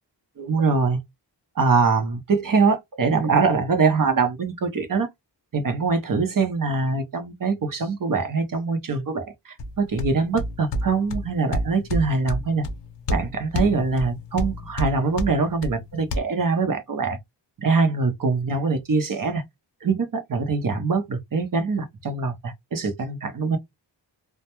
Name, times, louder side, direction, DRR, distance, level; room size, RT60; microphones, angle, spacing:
voice 1, 0.4-1.0 1.6-5.1 5.5-12.6 13.1-17.2 17.6-19.4 19.8-23.6, right 4 dB, 45° right, 0.7 m, -23 dB
sound 1, 9.6-16.2, left 1 dB, 70° left, 0.6 m, -30 dB
2.2 x 2.2 x 2.9 m
wide cardioid pair, 95°, 45 cm